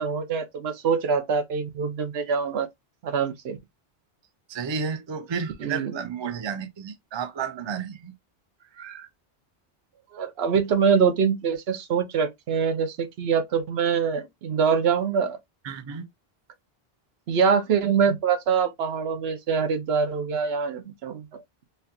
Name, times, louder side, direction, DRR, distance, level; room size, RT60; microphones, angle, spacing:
voice 1, 0.0-2.7 3.0-3.6 5.6-5.9 10.1-15.4 17.3-21.4, right 6 dB, 80° right, 1.0 m, -24 dB
voice 2, 4.5-8.1 8.7-9.1 15.6-16.0, right 6 dB, 35° right, 0.5 m, -32 dB
4.2 x 2.7 x 2.5 m
omnidirectional pair, 1.0 m